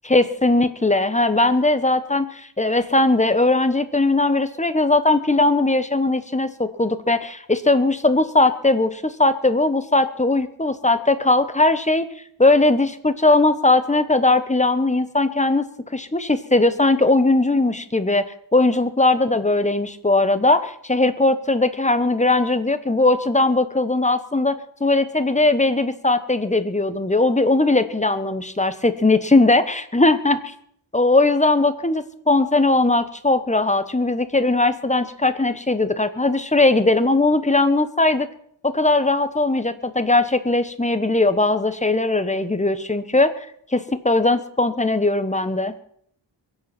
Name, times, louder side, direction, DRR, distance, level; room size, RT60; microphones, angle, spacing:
voice 1, 0.0-12.1 12.4-15.7 15.9-30.4 30.9-38.3 38.6-43.5 43.7-45.7, left 2 dB, 15° left, 12 dB, 1.1 m, -19 dB
23.0 x 8.1 x 5.9 m, 0.67 s
wide cardioid pair, 65°, 47 cm